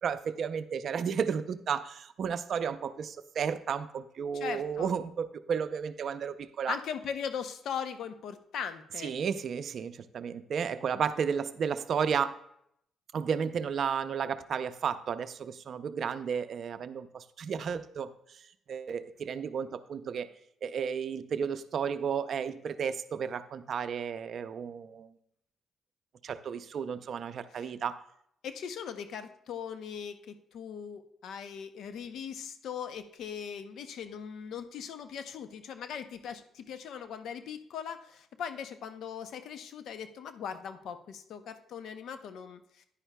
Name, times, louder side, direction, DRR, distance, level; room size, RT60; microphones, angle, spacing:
voice 1, 0.0-6.8 9.0-12.4 13.1-18.4 18.7-20.3 20.6-25.1 26.2-28.0, right 7 dB, 60° right, 12 dB, 0.5 m, -33 dB
voice 2, 4.3-5.0 6.7-9.2 27.5-27.7 28.4-42.9, left 7 dB, 75° left, 10 dB, 0.6 m, -39 dB
10.0 x 9.9 x 2.2 m, 0.73 s
cardioid pair, 90°, 0 cm